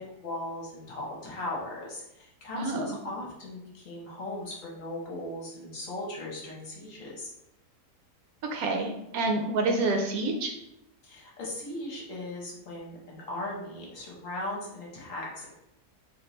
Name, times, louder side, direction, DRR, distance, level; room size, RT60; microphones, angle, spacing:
voice 1, 0.0-7.3 11.0-15.5, left 1 dB, 55° left, -3 dB, 1.3 m, -38 dB
voice 2, 2.5-3.0 8.5-10.5, right 2 dB, 70° right, 3 dB, 1.0 m, -28 dB
4.1 x 2.8 x 3.1 m, 0.87 s
omnidirectional pair, 1.7 m